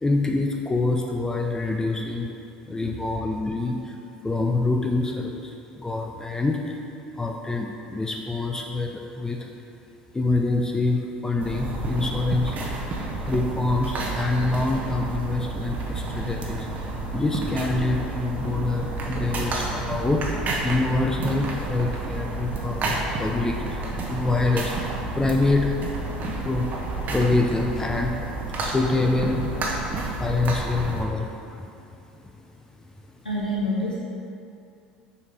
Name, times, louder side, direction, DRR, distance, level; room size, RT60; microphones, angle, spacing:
voice 1, 0.0-2.3 2.7-3.9 4.2-6.8 7.2-9.5 10.1-12.6 13.3-16.7 17.1-20.4 20.6-24.7 25.1-25.8 26.4-28.2 28.6-29.5 30.2-31.4, left 3 dB, 15° left, 1 dB, 0.5 m, -25 dB
sound 1, 11.4-31.0, right 2 dB, 35° right, 0.8 m, -30 dB
voice 2, 33.2-34.0, left 1 dB, 90° left, -7 dB, 0.8 m, -26 dB
6.9 x 4.9 x 3.5 m, 2.6 s
figure-of-eight pair, 70°, 4 cm